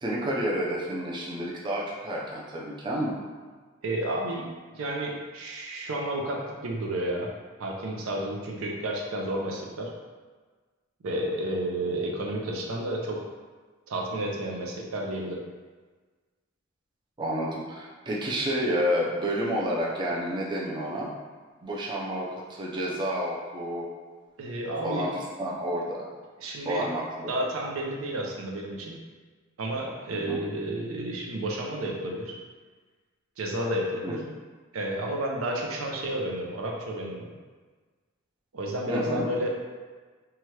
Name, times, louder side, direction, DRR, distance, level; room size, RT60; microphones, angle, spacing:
voice 1, 0.0-3.1 17.2-21.1 21.6-23.9 24.8-26.1 26.6-27.3 30.3-30.4 34.0-34.1 38.9-39.3, equal, 20° right, -4 dB, 0.4 m, -30 dB
voice 2, 3.8-4.5 4.7-7.3 7.6-9.9 11.0-13.2 13.9-15.4 24.4-25.1 26.4-26.9 27.3-29.0 29.6-32.3 33.4-34.2 34.7-37.3 38.5-39.5, right 1 dB, 85° right, -1 dB, 0.5 m, -31 dB
2.8 x 2.3 x 3.1 m, 1.4 s
head